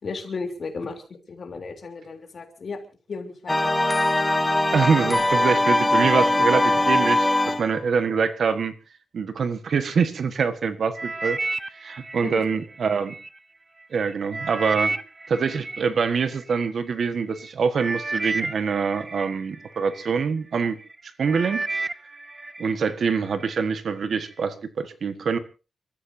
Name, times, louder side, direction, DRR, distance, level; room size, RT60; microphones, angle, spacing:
voice 1, 0.0-2.8 3.1-3.7 12.2-12.4, left 4 dB, 45° left, 5 dB, 3.5 m, -34 dB
sound 1, 3.5-7.8, left 2 dB, 15° left, 1.1 m, -21 dB
voice 2, 4.7-8.7 9.1-11.4 11.7-13.1 13.9-14.9 15.3-20.8 21.2-21.6 22.6-25.4, right 5 dB, 60° right, 11 dB, 1.5 m, -24 dB
sound 2, 11.0-13.3 13.8-16.7 17.4-17.5 17.8-20.2 20.7-21.0 21.3-22.8 23.1-23.6 24.2-24.3, right 3 dB, 20° right, 0.7 m, -32 dB
29.5 x 14.0 x 2.8 m, 0.33 s
wide cardioid pair, 165°, 0 cm